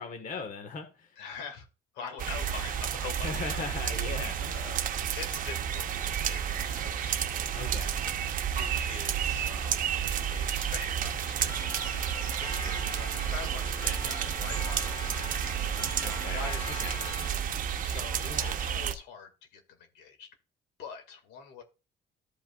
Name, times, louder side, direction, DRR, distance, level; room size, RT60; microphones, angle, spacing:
voice 1, 0.0-1.2 3.2-4.6 7.5-8.0 16.0-16.5 16.8-17.0 18.2-18.6, left 5 dB, 50° left, 7 dB, 1.5 m, -39 dB
voice 2, 1.2-1.7 1.9-3.6 4.5-4.9 5.1-7.5 8.5-20.3 20.8-21.6, left 6 dB, 90° left, 6 dB, 2.0 m, -45 dB
sound 1, 2.2-18.9, right 9 dB, 55° right, 0.9 m, -31 dB
Clock, 11.5-17.3, left 4 dB, 25° left, 0.6 m, -43 dB
14.0 x 5.4 x 2.4 m, 0.31 s
cardioid pair, 110°, 17 cm